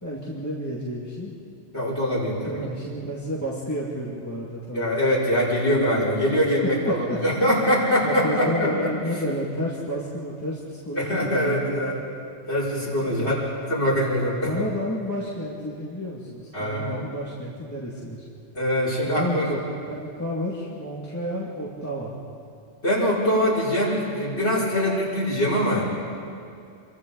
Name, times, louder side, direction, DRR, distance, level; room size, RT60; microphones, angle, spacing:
voice 1, 0.0-1.3 2.0-4.9 5.6-6.0 6.8-7.2 8.0-12.1 13.0-13.3 14.5-18.2 19.1-19.6 19.9-22.2, equal, 15° left, -6 dB, 2.2 m, -31 dB
voice 2, 1.7-2.6 4.7-8.9 10.9-12.0 12.5-13.3 13.7-14.6 16.5-17.0 18.5-19.5 22.8-25.9, equal, 65° left, -8 dB, 6.0 m, -23 dB
28.0 x 23.5 x 4.0 m, 2.4 s
omnidirectional pair, 1.2 m